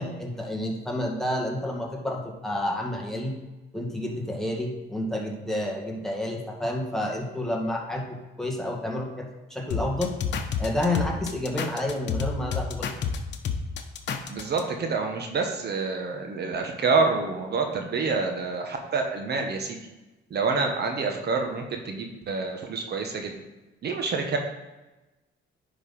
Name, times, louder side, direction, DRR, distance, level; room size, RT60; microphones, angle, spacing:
voice 1, 0.0-3.3 3.7-10.1 10.6-12.9, left 1 dB, ahead, -1 dB, 1.8 m, -30 dB
sound 1, 9.7-14.6, left 6 dB, 65° left, 1.0 m, -29 dB
voice 2, 14.3-19.8 20.3-23.3 23.8-24.4, right 4 dB, 55° right, 3 dB, 1.3 m, -27 dB
10.0 x 4.0 x 5.4 m, 1.1 s
cardioid pair, 90°, 20 cm